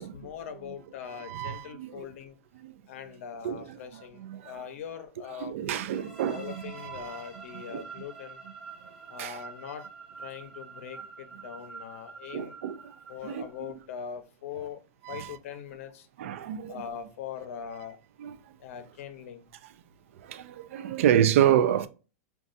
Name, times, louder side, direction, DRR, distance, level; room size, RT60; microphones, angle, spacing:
voice 1, 0.0-2.3 2.9-5.5 6.3-8.4 9.1-9.9 10.2-12.6 13.1-14.8 15.1-16.1 16.7-18.0 18.6-19.5, left 8 dB, 70° left, 0.7 m, -41 dB
voice 2, 1.2-2.1 2.6-2.7 3.4-4.5 5.4-7.2 7.7-7.8 9.2-9.4 12.3-12.9 13.2-13.4 15.0-15.4 16.2-16.8 18.2-18.4 20.2-21.9, right 10 dB, 65° right, 0.3 m, -28 dB
sound 1, 5.9-13.7, right 4 dB, 5° right, 0.7 m, -47 dB
3.9 x 2.3 x 2.5 m
supercardioid pair, 155°, 8 cm